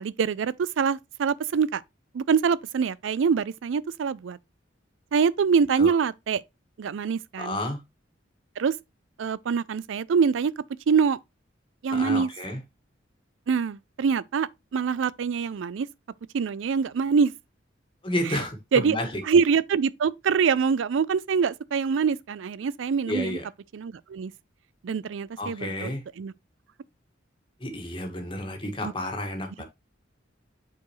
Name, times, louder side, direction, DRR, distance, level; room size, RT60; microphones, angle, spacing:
voice 1, 0.0-1.8 2.1-4.4 5.1-6.4 6.8-7.6 8.6-8.7 9.2-10.5 10.9-11.2 11.8-12.3 13.5-15.9 16.3-17.3 18.7-19.0 19.3-23.4 23.7-24.3 24.8-25.9 26.2-26.3, right 6 dB, 80° right, 0.4 m, -24 dB
voice 2, 7.4-7.8 11.9-12.6 18.0-19.2 23.1-23.4 25.4-26.0 27.6-29.6, left 1 dB, 25° left, 1.7 m, -31 dB
8.4 x 4.5 x 3.1 m
head